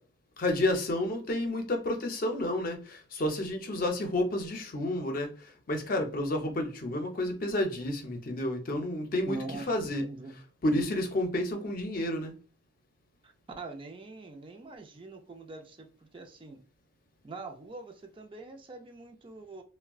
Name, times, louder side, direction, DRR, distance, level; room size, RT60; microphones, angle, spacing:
voice 1, 0.4-9.4 9.7-10.0 10.6-12.3, left 1 dB, 50° left, 0.6 m, -30 dB
voice 2, 9.3-10.4 13.2-16.6 17.2-19.6, right 3 dB, 30° right, 0.4 m, -43 dB
3.5 x 2.1 x 2.3 m
head